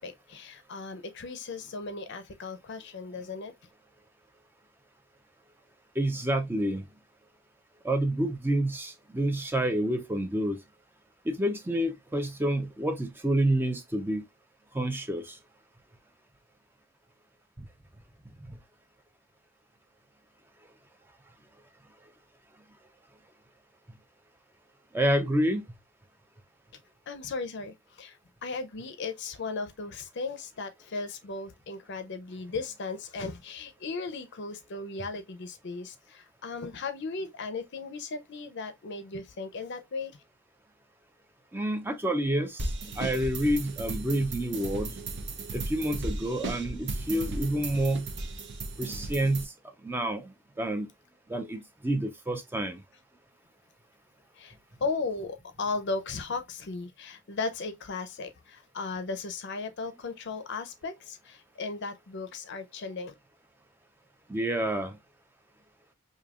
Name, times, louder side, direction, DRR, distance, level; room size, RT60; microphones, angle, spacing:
voice 1, 0.0-3.5 27.1-40.1 54.4-54.5 54.8-63.1, left 4 dB, 55° left, 0.6 m, -36 dB
voice 2, 6.0-6.8 7.8-10.6 11.3-14.2 14.7-15.4 18.5-18.6 24.9-25.6 41.5-42.7 43.0-44.9 45.5-48.1 48.8-49.5 49.8-50.9 51.3-52.8 64.3-65.0, right 1 dB, 10° right, 0.4 m, -28 dB
sound 1, 42.6-49.4, right 2 dB, 55° right, 0.8 m, -35 dB
5.1 x 2.7 x 2.3 m
head